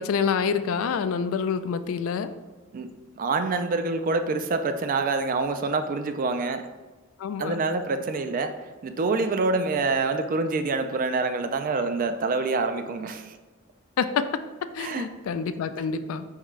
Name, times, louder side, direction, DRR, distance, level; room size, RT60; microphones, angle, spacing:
voice 1, 0.0-2.3 7.2-7.6 14.0-14.2 14.7-16.2, left 6 dB, 70° left, 11 dB, 0.3 m, -27 dB
voice 2, 3.2-6.6 7.4-8.5 8.8-13.3 14.8-15.2, right 3 dB, 40° right, 8 dB, 0.3 m, -26 dB
4.4 x 3.6 x 3.1 m, 1.3 s
head